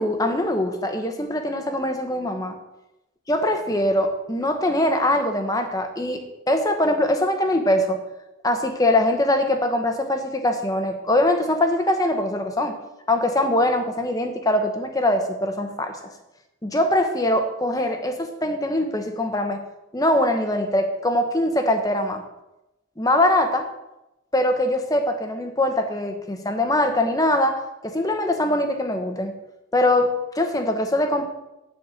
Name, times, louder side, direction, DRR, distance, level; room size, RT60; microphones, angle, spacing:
voice 1, 0.0-2.6 3.3-8.0 8.4-12.8 13.1-16.0 16.6-19.6 19.9-22.2 23.0-23.7 24.3-29.4 29.7-31.2, left 1 dB, 15° left, 5 dB, 0.9 m, -22 dB
10.0 x 4.3 x 7.6 m, 0.95 s
head